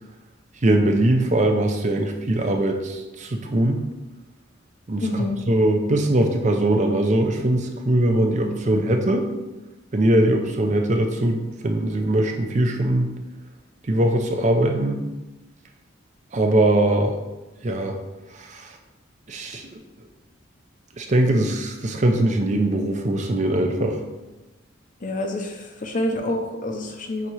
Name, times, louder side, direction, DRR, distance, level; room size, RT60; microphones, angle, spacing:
voice 1, 0.6-3.8 4.9-9.3 9.9-13.1 13.9-15.0 16.3-17.2 17.6-18.0 18.4-18.7 19.3-19.8 21.0-24.0, right 1 dB, 35° right, 4 dB, 0.6 m, -21 dB
voice 2, 5.0-5.4 25.0-27.3, left 1 dB, 40° left, 4 dB, 0.7 m, -27 dB
7.4 x 2.9 x 4.7 m, 1.1 s
head